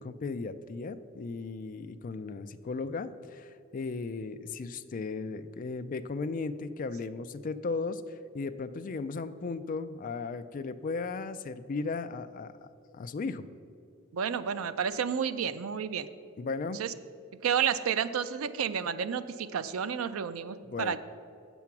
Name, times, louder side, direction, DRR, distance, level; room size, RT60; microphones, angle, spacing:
voice 1, 0.0-12.5 12.9-13.5 16.4-16.8 20.6-21.0, left 4 dB, 40° left, 11 dB, 0.4 m, -36 dB
voice 2, 14.1-16.1 16.8-16.9 17.4-21.0, right 7 dB, 80° right, 13 dB, 0.4 m, -31 dB
7.5 x 7.1 x 5.9 m, 2.4 s
head